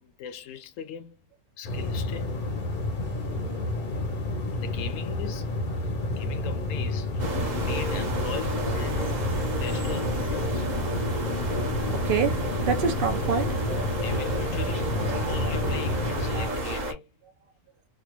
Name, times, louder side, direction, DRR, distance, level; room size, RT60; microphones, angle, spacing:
voice 1, 0.0-1.2 1.6-2.4 4.5-5.5 6.2-9.2 9.6-10.7 14.0-17.0, left 8 dB, 70° left, 0.9 m, -40 dB
sound 1, 1.6-16.5, left 2 dB, 45° left, 0.7 m, -30 dB
voice 2, 3.3-3.7 11.9-13.6, right 6 dB, 70° right, 0.5 m, -27 dB
sound 2, 7.2-16.9, right 1 dB, 35° right, 0.9 m, -31 dB
3.3 x 2.2 x 2.9 m
omnidirectional pair, 1.6 m